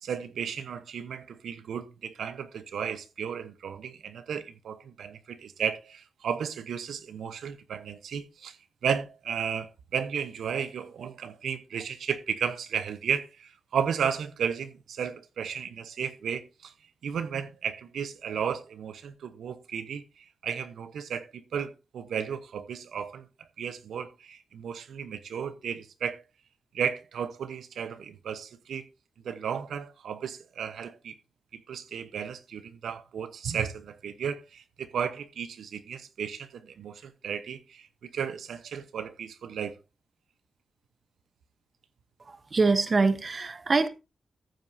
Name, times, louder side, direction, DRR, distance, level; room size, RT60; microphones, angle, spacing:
voice 1, 0.0-8.6 8.8-16.7 17.0-23.3 23.6-26.2 26.7-28.8 29.2-31.1 31.5-39.7, right 7 dB, 85° right, 0.9 m, -34 dB
voice 2, 42.5-43.9, right 3 dB, 30° right, 1.0 m, -23 dB
14.5 x 9.0 x 2.7 m
wide cardioid pair, 165°, 0 cm